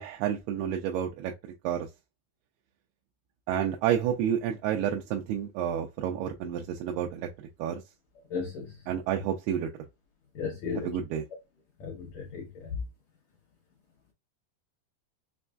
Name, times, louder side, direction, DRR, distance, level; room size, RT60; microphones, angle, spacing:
voice 1, 0.0-1.9 3.5-7.8 8.9-9.7 10.8-11.2, right 9 dB, 90° right, 2.6 m, -30 dB
voice 2, 8.3-8.7 10.3-10.9 11.8-12.7, left 5 dB, 70° left, 1.7 m, -35 dB
6.2 x 2.5 x 2.3 m
omnidirectional pair, 4.5 m